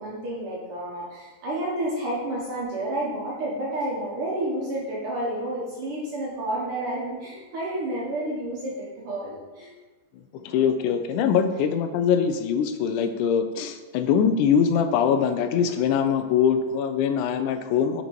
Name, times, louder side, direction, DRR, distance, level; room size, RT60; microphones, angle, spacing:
voice 1, 0.0-9.7, right 1 dB, 60° right, -4 dB, 1.7 m, -30 dB
voice 2, 10.3-18.0, left 7 dB, 85° left, 8 dB, 2.1 m, -23 dB
6.5 x 4.1 x 4.5 m, 1.2 s
omnidirectional pair, 3.5 m